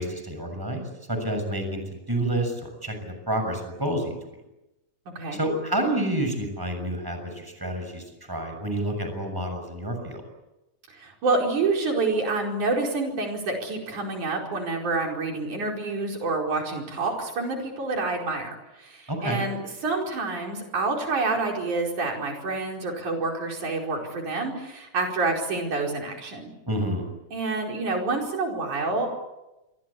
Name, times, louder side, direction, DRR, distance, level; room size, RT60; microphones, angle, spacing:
voice 1, 0.0-1.8 2.1-4.1 5.3-10.2 19.1-19.4 26.7-27.0, right 1 dB, 5° right, 5 dB, 6.6 m, -29 dB
voice 2, 10.9-18.5 18.8-26.5 27.3-29.1, right 3 dB, 85° right, 1 dB, 6.2 m, -28 dB
28.0 x 23.5 x 8.5 m, 0.99 s
omnidirectional pair, 3.4 m